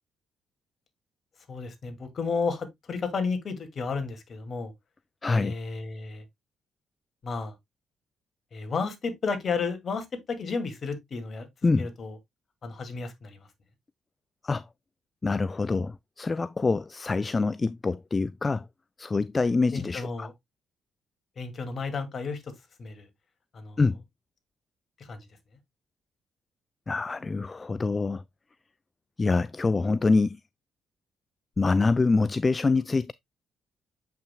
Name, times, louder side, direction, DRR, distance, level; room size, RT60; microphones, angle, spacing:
voice 1, 1.5-4.7 5.3-6.2 7.2-7.5 8.5-11.5 11.8-12.2 12.6-13.5 19.7-20.3 21.4-22.5 22.8-23.1 23.5-23.8 25.0-25.3, left 4 dB, 50° left, 2.2 m, -32 dB
voice 2, 5.2-5.5 11.6-11.9 14.4-14.6 15.2-18.7 19.0-20.3 23.8-24.0 26.9-28.2 29.2-30.4 31.6-33.1, left 3 dB, 30° left, 0.3 m, -25 dB
7.5 x 5.8 x 2.2 m
hypercardioid pair, 50°, 0 cm